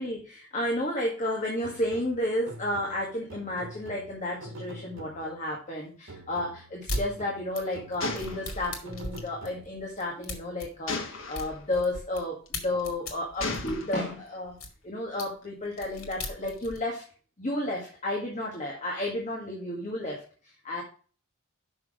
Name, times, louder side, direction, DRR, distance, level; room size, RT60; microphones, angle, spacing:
voice 1, 0.0-14.5 14.8-17.0 17.4-20.8, left 1 dB, 35° left, -1 dB, 1.8 m, -32 dB
sound 1, 1.6-5.5 6.1-10.0, right 1 dB, 75° right, 1.3 m, -46 dB
sound 2, 6.9-7.1 7.6-12.2 12.5-14.7 15.2-15.3 15.7-16.8, left 1 dB, 85° left, 2.2 m, -37 dB
Gunshot gunfire, 8.0-9.3 10.9-11.6 12.5-12.8 13.4-14.2, left 3 dB, 65° left, 1.6 m, -35 dB
6.3 x 5.9 x 5.0 m, 0.40 s
head